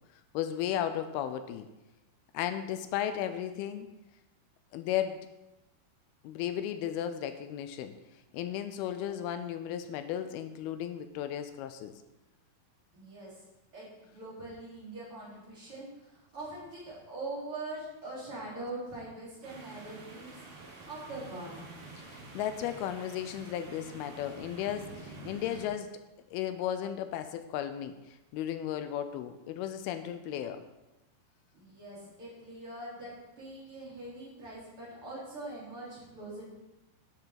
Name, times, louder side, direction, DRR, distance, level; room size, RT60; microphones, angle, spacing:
voice 1, 0.3-1.7 2.3-3.9 4.7-5.2 6.2-8.0 8.3-11.9 22.0-25.9 26.3-30.6, left 10 dB, 85° left, 10 dB, 2.5 m, -35 dB
voice 2, 12.9-13.4 13.7-20.4 20.8-21.5 31.5-36.5, right 2 dB, 35° right, -7 dB, 4.5 m, -43 dB
sound 1, 19.4-25.7, right 2 dB, 50° right, 3.1 m, -48 dB
11.0 x 7.1 x 5.8 m, 0.97 s
omnidirectional pair, 4.5 m